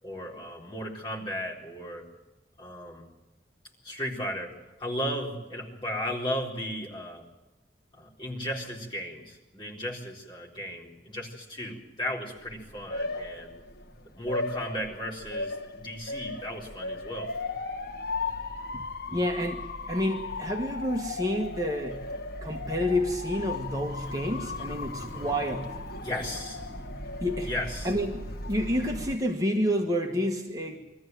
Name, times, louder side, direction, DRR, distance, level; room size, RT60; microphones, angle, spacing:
voice 1, 0.0-2.1 2.6-3.1 3.8-7.2 7.9-13.5 14.1-17.4 26.0-26.7 27.4-27.9, equal, 30° left, -2 dB, 4.1 m, -35 dB
Motor vehicle (road) / Siren, 12.4-29.2, left 2 dB, 60° left, 1.4 m, -37 dB
voice 2, 19.1-22.0 22.4-25.7 27.2-27.5 27.8-30.9, equal, 20° right, 2 dB, 1.4 m, -29 dB
22.5 x 14.5 x 9.2 m, 1.1 s
head